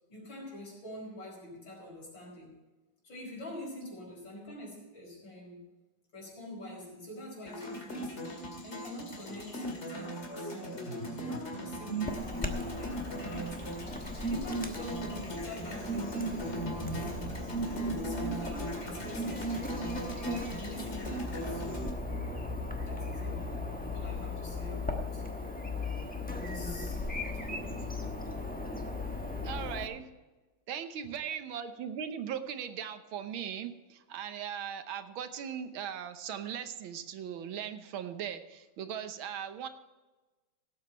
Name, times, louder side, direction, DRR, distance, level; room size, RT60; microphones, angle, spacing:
voice 1, 0.1-2.5 3.0-5.6 6.1-10.9 11.2-13.6 14.2-17.1 17.9-19.9 20.5-21.9 22.9-25.2 26.4-27.0 27.3-27.9, left 1 dB, 65° left, -2 dB, 5.7 m, -46 dB
sound 1, 7.4-21.9, right 1 dB, 35° left, 2.2 m, -38 dB
Chirp tweet / Buzz, 12.0-29.9, left 2 dB, 10° left, 0.6 m, -38 dB
voice 2, 29.4-30.1 30.7-39.7, right 8 dB, 80° right, 9 dB, 1.7 m, -39 dB
17.5 x 8.1 x 4.4 m, 1.2 s
omnidirectional pair, 2.3 m